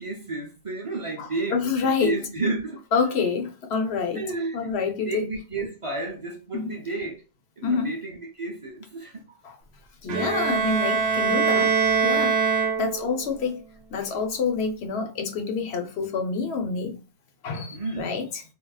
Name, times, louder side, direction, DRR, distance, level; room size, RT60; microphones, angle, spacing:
voice 1, 0.0-2.8 4.1-4.8 5.1-7.2 7.6-9.4 10.2-10.6 17.7-18.1, right 3 dB, 40° right, 0.6 m, -32 dB
voice 2, 1.2-2.2 2.9-4.2 4.5-5.2 6.5-6.8 7.6-7.9 9.4-9.6 10.0-12.4 12.6-13.6 13.9-17.0 17.4-18.4, left 5 dB, 80° left, 1.0 m, -27 dB
Bowed string instrument, 10.1-13.3, right 5 dB, 75° right, 0.8 m, -23 dB
3.6 x 2.3 x 2.3 m
omnidirectional pair, 1.1 m